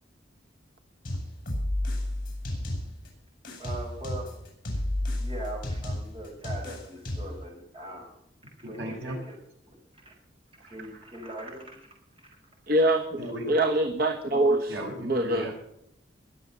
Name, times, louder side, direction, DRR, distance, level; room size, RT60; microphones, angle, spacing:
sound 1, 1.0-3.1 3.4-7.4, left 1 dB, 50° left, 6.6 m, -32 dB
voice 1, 3.6-4.4 5.2-8.2 8.6-9.4 9.7-10.2 10.7-11.9 12.2-12.3, right 1 dB, 30° right, 0 dB, 5.4 m, -41 dB
voice 2, 8.6-9.2 13.2-13.5 14.7-15.5, equal, 80° right, -1 dB, 7.5 m, -35 dB
voice 3, 12.7-15.5, right 1 dB, 55° right, 6 dB, 1.3 m, -25 dB
22.5 x 7.5 x 6.7 m, 0.76 s
head